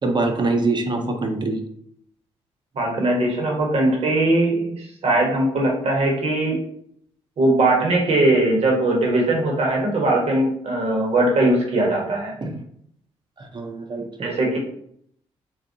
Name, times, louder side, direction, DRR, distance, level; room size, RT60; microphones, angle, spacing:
voice 1, 0.0-1.7 12.4-12.6 13.4-14.3, right 2 dB, 35° right, 4 dB, 0.7 m, -24 dB
voice 2, 2.7-6.6 7.4-12.3 14.2-14.6, right 2 dB, 55° right, -1 dB, 1.1 m, -20 dB
4.0 x 2.1 x 2.7 m, 0.67 s
supercardioid pair, 55°, 12 cm